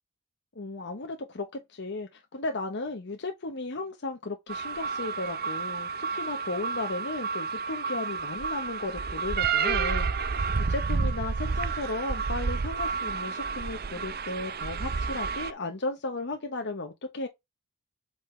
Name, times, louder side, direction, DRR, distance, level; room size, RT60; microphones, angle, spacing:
voice 1, 0.5-17.3, left 2 dB, 55° left, 1.0 m, -35 dB
sound 1, 4.5-15.5, right 5 dB, 45° right, 0.6 m, -30 dB
7.9 x 4.3 x 3.3 m
head